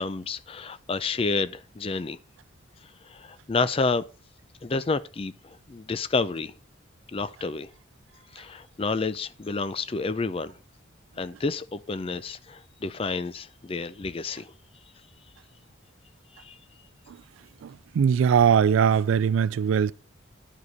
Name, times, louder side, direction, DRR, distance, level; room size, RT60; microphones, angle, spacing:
voice 1, 0.0-2.2 3.1-4.0 4.6-6.5 7.1-7.7 8.3-10.5 11.2-14.5 16.4-16.6, left 3 dB, 25° left, 0.4 m, -29 dB
voice 2, 17.6-19.9, right 7 dB, 80° right, 0.3 m, -21 dB
11.0 x 4.9 x 4.0 m
head